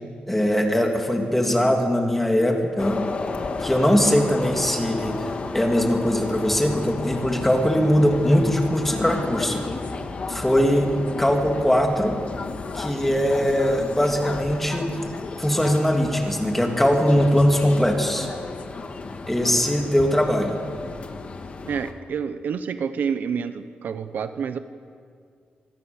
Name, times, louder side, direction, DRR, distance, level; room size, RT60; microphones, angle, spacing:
voice 1, 0.3-3.0 3.6-9.6 10.3-10.9 11.2-12.2 12.7-14.9 15.4-18.3 19.3-20.6, equal, 5° left, 2 dB, 2.8 m, -21 dB
sound 1, 2.8-21.9, left 4 dB, 40° left, 1.6 m, -33 dB
voice 2, 21.7-24.6, right 6 dB, 65° right, 10 dB, 0.9 m, -28 dB
24.5 x 18.5 x 7.2 m, 2.2 s
wide cardioid pair, 135°, 3 cm